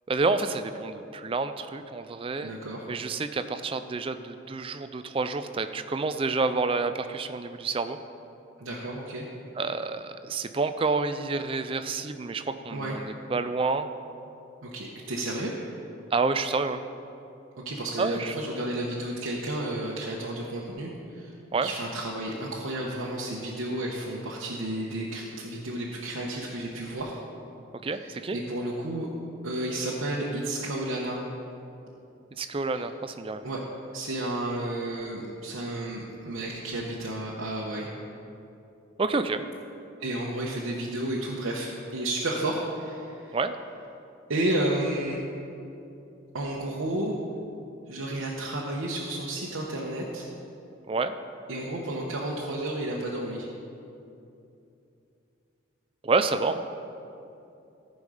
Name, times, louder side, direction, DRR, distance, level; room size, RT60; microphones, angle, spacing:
voice 1, 0.1-2.5 2.9-8.0 9.6-13.9 16.1-16.8 18.0-18.3 21.5-21.7 27.8-28.4 32.4-33.5 39.0-39.4 43.3-43.6 50.9-51.1 56.0-56.6, right 3 dB, 25° right, 10 dB, 0.3 m, -28 dB
voice 2, 2.4-2.8 8.6-9.2 12.7-13.0 14.6-15.5 17.6-21.3 21.6-27.1 28.0-29.1 29.4-31.2 32.7-32.8 33.4-33.6 33.9-37.9 40.0-43.4 44.3-45.2 46.3-47.1 47.9-50.2 51.5-53.5, right 1 dB, 85° right, -4 dB, 1.0 m, -32 dB
14.5 x 5.3 x 4.9 m, 2.7 s
head